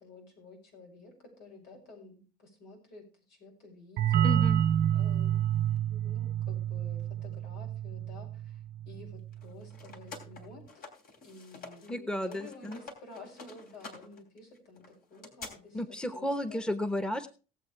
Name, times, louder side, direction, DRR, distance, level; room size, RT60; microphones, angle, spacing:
voice 1, 0.0-4.4 4.9-5.4 5.9-10.9 11.2-14.8 15.1-16.6, left 3 dB, 85° left, 1 dB, 6.2 m, -51 dB
sound 1, 4.0-9.4, right 10 dB, 70° right, 1.0 m, -29 dB
voice 2, 4.2-4.6 11.9-12.8 15.7-17.3, left 1 dB, 5° left, 11 dB, 1.0 m, -33 dB
sound 2, 9.3-11.9 12.2-15.5, left 4 dB, 60° left, 3.1 m, -48 dB
18.0 x 7.8 x 3.3 m, 0.34 s
cardioid pair, 110°, 17 cm